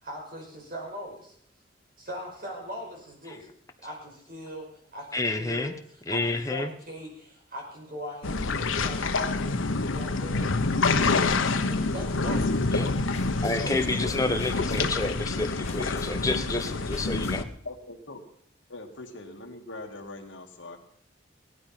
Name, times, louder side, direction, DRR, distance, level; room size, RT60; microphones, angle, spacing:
voice 1, 0.0-1.3 2.0-3.5 3.8-9.6 9.9-10.5 10.8-12.8, equal, 45° right, -1 dB, 5.7 m, -40 dB
voice 2, 5.1-5.7 6.1-6.7 12.7-12.9 13.4-17.5, left 2 dB, 15° left, 5 dB, 1.1 m, -29 dB
sound 1, 8.2-17.4, left 3 dB, 90° left, 1.0 m, -27 dB
sound 2, 12.5-17.6, left 2 dB, 35° left, 1.5 m, -44 dB
voice 3, 13.5-14.8 17.6-18.2 18.7-20.8, left 2 dB, 70° left, 3 dB, 2.3 m, -41 dB
17.0 x 12.0 x 5.9 m, 0.66 s
head